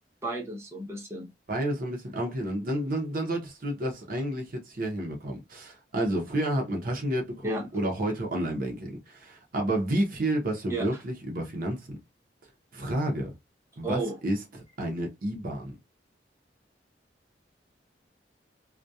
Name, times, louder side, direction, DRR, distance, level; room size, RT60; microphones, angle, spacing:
voice 1, 0.2-1.3 7.4-7.6 10.7-10.9 13.8-14.2, right 2 dB, 15° right, 0.7 m, -32 dB
voice 2, 1.5-12.0 12.7-13.3 13.8-15.7, right 1 dB, 55° right, 0.6 m, -30 dB
2.6 x 2.1 x 2.2 m
head